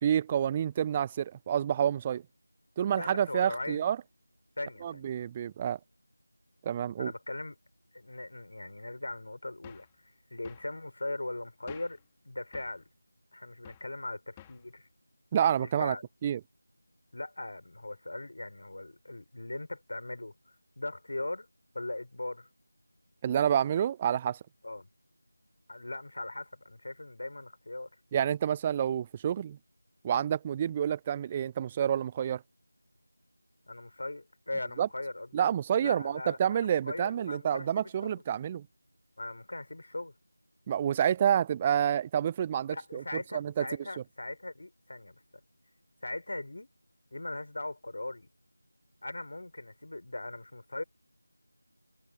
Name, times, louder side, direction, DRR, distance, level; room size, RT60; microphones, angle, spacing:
voice 1, 0.0-2.2 2.8-4.0 4.8-5.8 6.6-7.1 15.3-16.0 16.2-16.4 23.2-24.4 28.1-29.6 30.0-32.4 34.8-34.9 35.3-38.7 40.7-43.0 43.3-43.7, right 9 dB, 10° right, 0.3 m, -28 dB
voice 2, 2.9-3.8 4.6-5.2 7.0-7.5 7.9-12.0 12.2-12.8 13.3-14.9 15.6-16.1 17.1-21.5 21.7-22.5 24.6-24.9 25.7-27.9 33.7-35.3 35.8-38.2 39.2-40.1 42.7-45.1 46.0-46.7 47.1-48.3 49.0-50.8, left 2 dB, 50° left, 5.0 m, -39 dB
sound 1, 9.6-10.0 10.4-10.7 11.7-12.1 12.5-12.8 13.6-13.9 14.4-14.7, left 12 dB, 10° left, 2.2 m, -51 dB
figure-of-eight pair, 170°, 0 cm